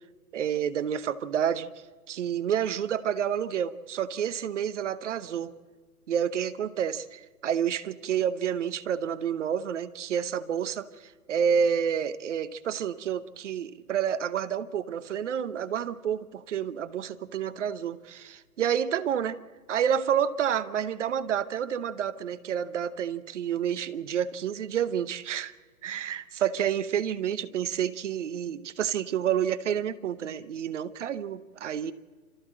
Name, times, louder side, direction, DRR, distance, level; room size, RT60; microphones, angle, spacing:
voice 1, 0.3-1.7 2.1-5.5 6.1-19.4 19.7-25.5 25.8-31.9, right 8 dB, 50° right, 14 dB, 1.0 m, -29 dB
29.0 x 14.0 x 7.7 m, 1.5 s
hypercardioid pair, 145°, 47 cm